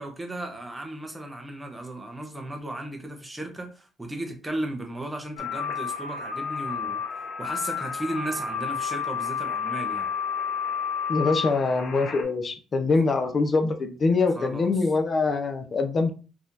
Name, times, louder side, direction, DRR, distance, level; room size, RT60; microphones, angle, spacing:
voice 1, 0.0-7.0 7.4-10.1 14.3-14.9, right 1 dB, 10° right, 0.8 m, -35 dB
sound 1, 5.4-12.2, left 6 dB, 70° left, 0.9 m, -31 dB
voice 2, 11.1-16.1, left 3 dB, 35° left, 0.6 m, -24 dB
4.1 x 2.8 x 2.6 m
cardioid pair, 125°, 0 cm